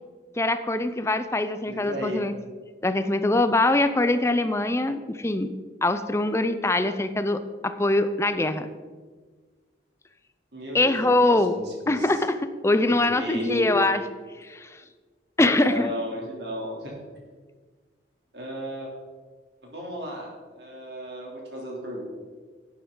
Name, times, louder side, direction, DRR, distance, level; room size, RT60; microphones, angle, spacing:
voice 1, 0.4-2.3 2.8-5.5 5.8-8.7 10.7-11.5 11.9-14.0 14.4-14.7 15.4-15.9, left 2 dB, 15° left, 10 dB, 0.5 m, -23 dB
voice 2, 1.7-2.2 10.5-10.9 11.3-12.2 13.1-14.0 15.5-16.9 18.3-18.9 19.6-22.0, left 1 dB, 65° right, -2 dB, 3.0 m, -34 dB
11.5 x 9.4 x 3.8 m, 1.5 s
head